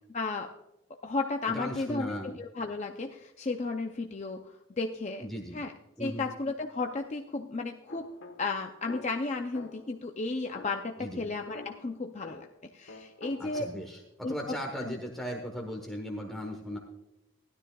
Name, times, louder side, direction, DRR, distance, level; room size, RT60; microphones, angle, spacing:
voice 1, 0.1-0.5 1.0-4.5 4.8-5.3 5.5-5.7 6.0-8.0 8.4-12.5 12.7-13.7 14.2-14.5 14.8-15.0, left 3 dB, 30° left, 3 dB, 0.5 m, -34 dB
voice 2, 1.5-2.3 5.2-5.6 6.0-6.2 11.0-11.3 13.4-16.8, equal, ahead, 0 dB, 1.1 m, -37 dB
sound 1, 7.9-10.0 10.5-12.6 12.9-14.1, left 3 dB, 65° left, 1.2 m, -49 dB
16.5 x 12.0 x 2.3 m, 0.93 s
head